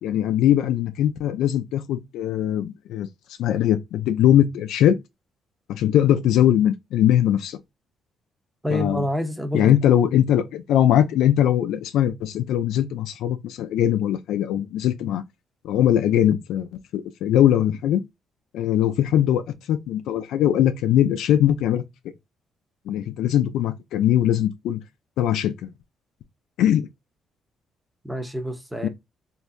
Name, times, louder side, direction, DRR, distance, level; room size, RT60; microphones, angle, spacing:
voice 1, 0.0-3.1 3.4-5.0 5.7-7.6 8.7-9.1 9.5-15.2 15.6-18.0 18.5-21.8 22.9-24.8 25.2-25.7 26.6-26.9 28.8-28.9, left 11 dB, 85° left, 0.4 m, -21 dB
voice 2, 8.6-9.7 28.0-28.9, equal, 5° right, 0.7 m, -27 dB
3.2 x 2.6 x 2.2 m
cardioid pair, 90°, 0 cm